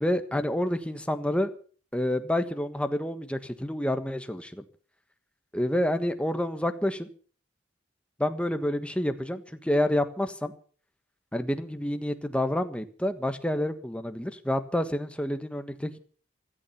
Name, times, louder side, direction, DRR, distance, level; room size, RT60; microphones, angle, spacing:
voice 1, 0.0-1.5 1.9-4.6 5.5-7.1 8.2-10.5 11.3-16.0, left 1 dB, 5° left, 9 dB, 1.4 m, -28 dB
16.0 x 14.5 x 5.9 m, 0.43 s
head